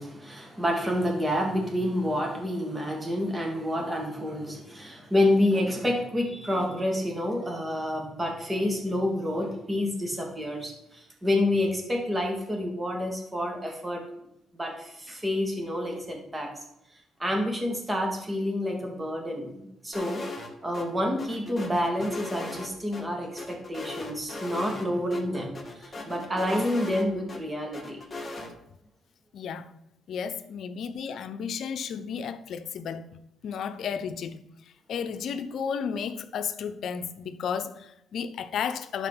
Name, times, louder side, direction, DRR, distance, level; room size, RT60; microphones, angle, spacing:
voice 1, 0.0-14.0 14.6-16.5 17.2-20.2 20.6-28.0, left 1 dB, 15° right, 2.7 m, -28 dB
sound 1, 19.9-20.5 20.7-20.9 21.2-23.0 23.4-24.9 25.1-25.2 25.5-27.4 27.7-28.5, left 2 dB, 25° left, 2.6 m, -38 dB
voice 2, 29.3-29.7 30.1-33.0 33.4-34.4 34.9-39.1, left 7 dB, 70° left, 0.8 m, -33 dB
11.5 x 4.9 x 6.1 m
cardioid pair, 90°, 0 cm